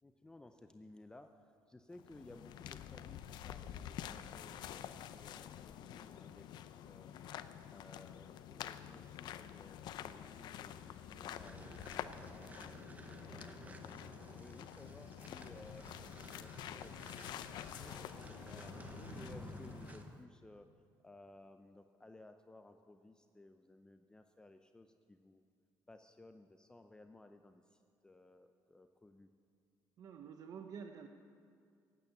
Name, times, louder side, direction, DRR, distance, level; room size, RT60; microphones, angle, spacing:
voice 1, 0.0-7.1 7.7-12.6 13.3-17.3 17.6-20.7 21.0-25.4 25.9-29.3, left 2 dB, 10° left, 7 dB, 0.5 m, -58 dB
sound 1, 1.9-20.2, left 10 dB, 70° left, 0.6 m, -48 dB
sound 2, 11.3-20.2, right 3 dB, 20° right, 1.0 m, -54 dB
voice 2, 30.0-31.1, right 6 dB, 50° right, 5 dB, 0.8 m, -49 dB
15.5 x 8.5 x 9.3 m, 2.3 s
cardioid pair, 135°, 8 cm